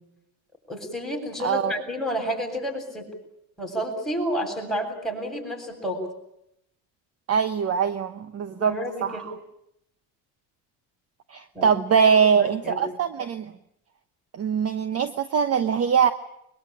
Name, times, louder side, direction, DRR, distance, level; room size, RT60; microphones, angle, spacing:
voice 1, 0.7-3.1 3.6-6.0 8.5-9.2 11.5-12.9, equal, ahead, 1 dB, 7.9 m, -30 dB
voice 2, 1.4-1.7 7.3-8.7 9.0-9.3 11.3-13.5 14.3-16.1, right 7 dB, 35° right, 11 dB, 1.0 m, -22 dB
23.0 x 22.0 x 8.9 m, 0.79 s
cardioid pair, 125°, 45 cm